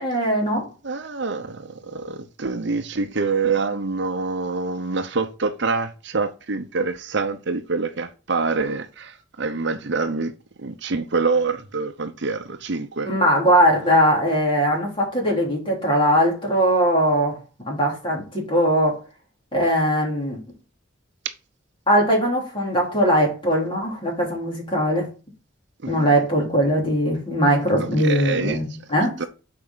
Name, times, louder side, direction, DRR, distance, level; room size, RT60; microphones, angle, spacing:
voice 1, 0.0-0.7 13.0-17.4 17.6-19.0 19.5-20.4 21.9-25.1 25.9-29.1, equal, 25° left, 3.3 m, -20 dB
voice 2, 0.8-10.3 10.6-13.1 25.8-26.1 27.8-28.6 29.2-29.3, right 4 dB, 60° right, 0.8 m, -26 dB
7.6 x 4.9 x 4.0 m
head